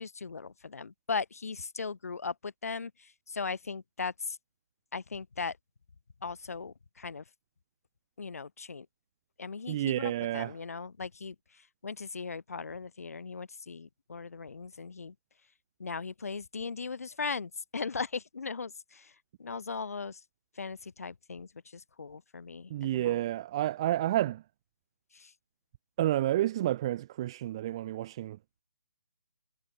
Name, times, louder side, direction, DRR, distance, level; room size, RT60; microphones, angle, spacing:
voice 1, 0.0-2.9 3.3-4.4 4.9-5.5 6.2-7.2 8.2-8.9 9.4-11.3 11.8-15.1 15.8-19.0 19.4-20.2 20.6-21.5 22.0-23.2, left 4 dB, 55° left, 2.2 m, -38 dB
voice 2, 9.7-10.6 22.7-24.4 26.0-28.4, right 13 dB, 15° right, 2.6 m, -30 dB
hypercardioid pair, 180°, 10 cm